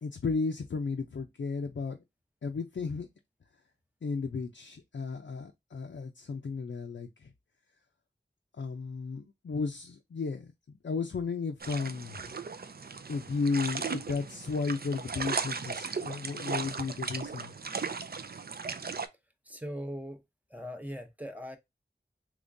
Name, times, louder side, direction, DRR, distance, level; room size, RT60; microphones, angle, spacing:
voice 1, 0.0-2.0 2.4-3.1 4.0-7.3 8.6-12.3 13.1-17.5, left 4 dB, 85° left, 0.4 m, -34 dB
sound 1, 11.6-19.1, right 5 dB, 55° right, 0.4 m, -37 dB
voice 2, 19.4-20.2 20.5-21.6, equal, 10° right, 0.6 m, -40 dB
3.6 x 3.0 x 2.5 m
wide cardioid pair, 40°, 19 cm